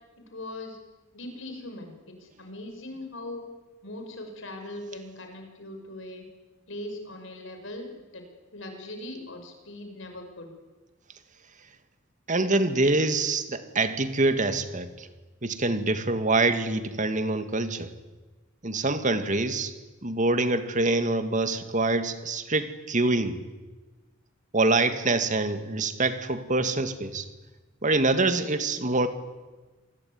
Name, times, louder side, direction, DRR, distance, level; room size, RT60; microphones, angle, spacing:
voice 1, 0.3-0.8 1.1-3.4 3.8-6.2 6.7-8.2 8.5-10.5, left 1 dB, 70° left, 5 dB, 5.9 m, -40 dB
voice 2, 12.3-15.1 15.4-17.9 18.6-19.7 20.0-23.4 24.5-27.3 27.8-29.1, right 2 dB, 40° right, 9 dB, 2.1 m, -25 dB
27.5 x 19.5 x 9.6 m, 1.2 s
head